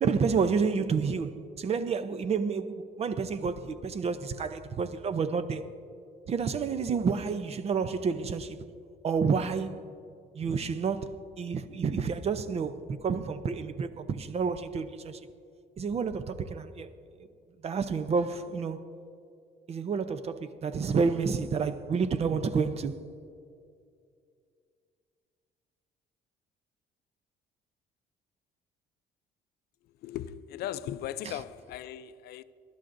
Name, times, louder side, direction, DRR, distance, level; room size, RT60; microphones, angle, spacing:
voice 1, 0.0-5.6 6.3-8.6 9.0-9.9 10.3-15.2 15.8-16.9 17.6-18.8 19.7-23.0 31.2-31.3, right 5 dB, 40° right, 0.6 m, -29 dB
voice 2, 30.0-32.4, left 11 dB, 70° left, 0.5 m, -38 dB
22.0 x 11.5 x 2.6 m
cardioid pair, 110°, 17 cm